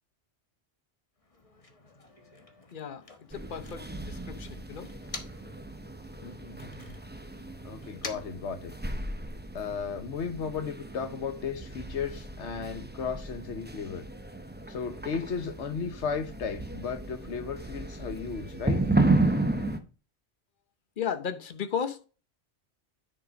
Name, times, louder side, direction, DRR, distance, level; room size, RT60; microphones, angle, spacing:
Motor vehicle (road), 1.2-5.6 5.9-9.2, left 3 dB, 30° left, 1.3 m, -48 dB
voice 1, 2.7-3.0 3.3-4.9 21.0-22.1, left 7 dB, 50° left, 1.0 m, -34 dB
sound 1, 3.3-19.8, right 2 dB, 10° right, 0.8 m, -33 dB
voice 2, 6.2-7.0 7.6-8.7 9.5-14.1 14.7-18.8, left 6 dB, 75° left, 1.3 m, -35 dB
9.8 x 5.1 x 5.1 m
omnidirectional pair, 1.2 m